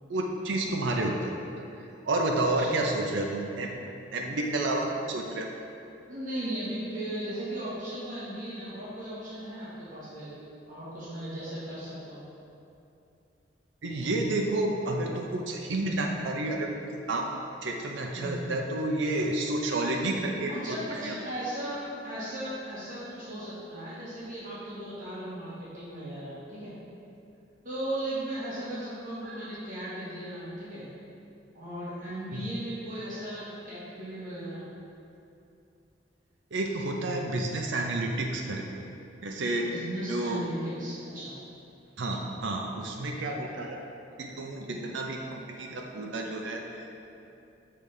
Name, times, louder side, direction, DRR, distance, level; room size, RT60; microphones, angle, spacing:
voice 1, 0.1-1.3 1.8-3.8 4.1-5.5 13.8-17.3 17.6-20.8 21.0-21.1 29.2-29.4 32.3-32.5 36.5-38.7 39.2-39.7 40.0-40.4 42.0-43.8 44.2-47.0, right 2 dB, 85° right, 1 dB, 0.5 m, -30 dB
voice 2, 6.1-10.3 10.7-12.2 18.2-18.7 20.5-26.8 27.6-30.9 31.5-34.6 39.6-41.3 44.5-44.7, right 1 dB, 45° right, -10 dB, 1.5 m, -37 dB
6.6 x 3.3 x 5.3 m, 2.7 s
head